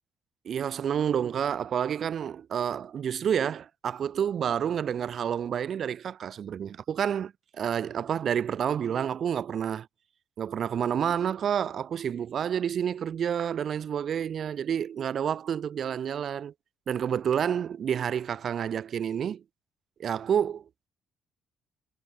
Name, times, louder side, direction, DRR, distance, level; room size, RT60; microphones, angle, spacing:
voice 1, 0.4-9.9 10.4-16.5 16.9-19.4 20.0-20.6, right 8 dB, 45° right, 0.8 m, -29 dB
cardioid pair, 145°, 0 cm